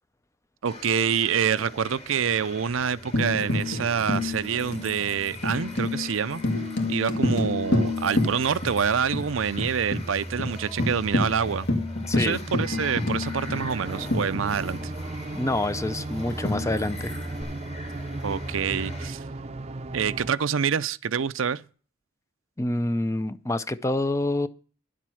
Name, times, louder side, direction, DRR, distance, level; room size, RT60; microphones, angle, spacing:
sound 1, 0.6-19.1, equal, 30° left, 2.8 m, -39 dB
voice 1, 0.6-6.4 6.9-11.7 12.1-14.9 18.2-19.2 19.9-21.7, right 7 dB, 85° right, 0.5 m, -26 dB
Tambourine, 3.1-8.8 9.1-9.2 9.6-10.0 10.4-10.5 10.8-14.9 16.4-17.4, left 2 dB, 60° left, 1.9 m, -28 dB
voice 2, 12.1-12.4 15.3-17.1 22.6-24.5, left 2 dB, 15° left, 0.5 m, -27 dB
sound 2, 13.5-20.3, right 2 dB, 30° right, 0.6 m, -37 dB
11.0 x 7.5 x 6.3 m
head